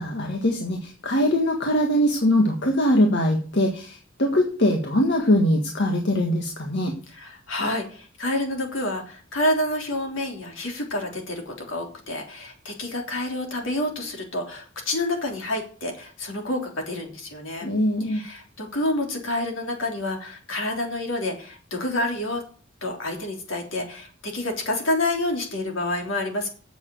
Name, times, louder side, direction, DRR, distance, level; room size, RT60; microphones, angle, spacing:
voice 1, 0.0-6.9 17.6-18.2, left 1 dB, 60° left, 1 dB, 1.7 m, -22 dB
voice 2, 7.1-17.7 18.1-22.4 22.8-26.5, left 1 dB, 75° left, 2 dB, 3.3 m, -28 dB
8.2 x 7.1 x 7.9 m, 0.41 s
head